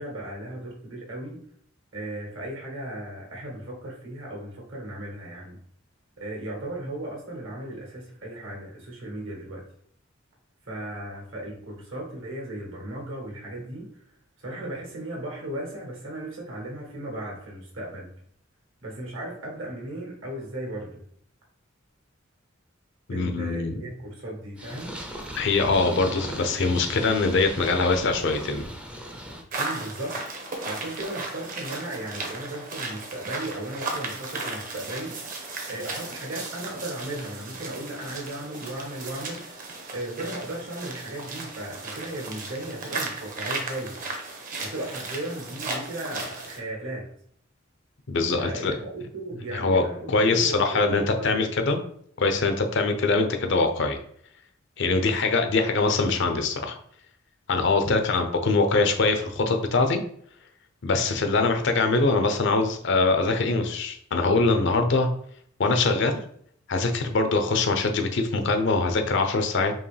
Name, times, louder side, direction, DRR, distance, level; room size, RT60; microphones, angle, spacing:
voice 1, 0.0-1.4 1.9-5.6 6.2-9.6 10.7-13.9 14.4-18.1 18.8-21.0 23.1-25.0 29.6-30.2 30.6-44.0 44.6-47.1 48.4-51.5 54.8-55.3, right 1 dB, 75° right, -1 dB, 1.7 m, -36 dB
voice 2, 23.1-23.7 25.4-28.7 48.1-48.7 49.5-49.8 50.1-51.8 52.2-54.0 54.8-56.8 57.5-60.0 60.8-65.1 65.6-66.2 66.7-69.7, left 3 dB, 65° left, 6 dB, 0.6 m, -23 dB
Purr, 24.6-29.4, equal, 5° right, 0.5 m, -38 dB
sound 1, 29.5-46.6, right 3 dB, 45° right, 0.9 m, -35 dB
4.6 x 2.9 x 3.3 m, 0.64 s
head